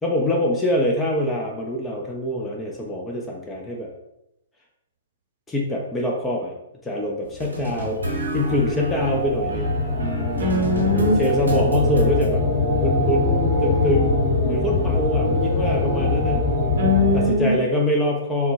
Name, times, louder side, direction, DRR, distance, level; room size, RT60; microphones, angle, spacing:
voice 1, 0.0-3.9 5.5-6.5 6.8-8.0 8.3-9.7 11.2-12.4 12.8-16.5 17.1-18.5, left 1 dB, 10° left, -1 dB, 0.3 m, -24 dB
sound 1, 7.4-17.3, left 3 dB, 40° left, 0.7 m, -23 dB
sound 2, 7.4-12.3, right 1 dB, 75° right, 0.6 m, -29 dB
voice 2, 10.4-11.6 16.7-17.5, left 2 dB, 50° right, -1 dB, 0.8 m, -21 dB
2.1 x 2.1 x 3.1 m, 0.85 s
figure-of-eight pair, 115°, 0 cm